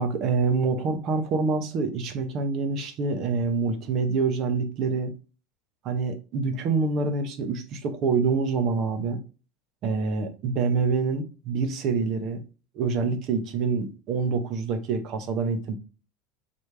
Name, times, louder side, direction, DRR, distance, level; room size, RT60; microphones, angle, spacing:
voice 1, 0.0-5.1 5.8-9.2 9.8-12.4 12.7-15.8, right 4 dB, 35° right, 0.7 m, -26 dB
4.1 x 3.3 x 3.4 m
supercardioid pair, 170°, 0 cm